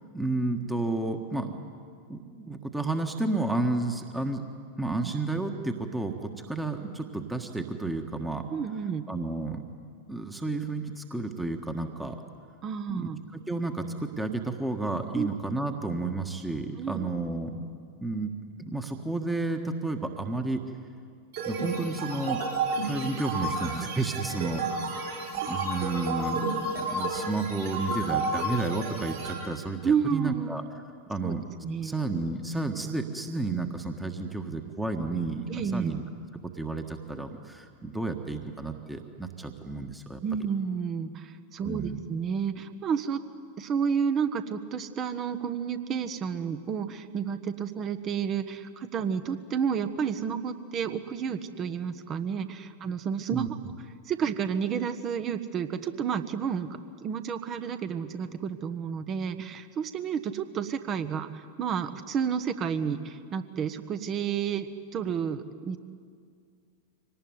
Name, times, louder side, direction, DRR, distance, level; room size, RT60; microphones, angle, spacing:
voice 1, 0.1-1.6 2.1-4.4 4.8-8.4 9.1-9.6 10.1-12.2 12.9-17.6 18.0-18.3 18.6-20.6 21.4-22.4 22.9-24.8 25.5-30.6 31.1-31.4 31.8-36.0 36.4-40.2 41.6-42.0 53.3-53.5, right 2 dB, 5° right, 5 dB, 1.6 m, -31 dB
voice 2, 8.5-9.1 12.6-13.2 15.1-15.3 16.8-17.1 29.8-30.6 31.2-31.3 31.6-31.9 35.5-35.9 40.2-43.2 43.6-53.5 54.1-56.7 57.0-65.8, right 7 dB, 30° right, 10 dB, 1.3 m, -31 dB
sound 1, 21.3-29.3, right 3 dB, 60° right, 7.5 m, -31 dB
25.0 x 18.5 x 9.7 m, 2.2 s
figure-of-eight pair, 90°, 0 cm